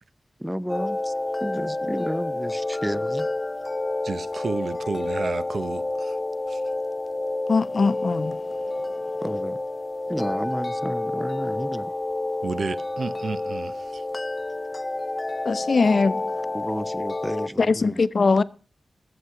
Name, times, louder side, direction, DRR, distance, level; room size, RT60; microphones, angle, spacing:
voice 1, 0.4-1.1 1.4-3.3 9.2-9.6 10.1-11.9 16.5-18.0, equal, 5° right, 0.5 m, -31 dB
sound 1, 0.7-17.5, left 2 dB, 25° left, 0.7 m, -29 dB
voice 2, 4.0-6.2 6.5-6.6 12.4-14.0, right 4 dB, 80° right, 0.6 m, -31 dB
voice 3, 7.5-8.4 15.4-16.2 17.6-18.4, left 4 dB, 60° left, 0.6 m, -21 dB
14.5 x 8.0 x 5.8 m
wide cardioid pair, 115°, 0 cm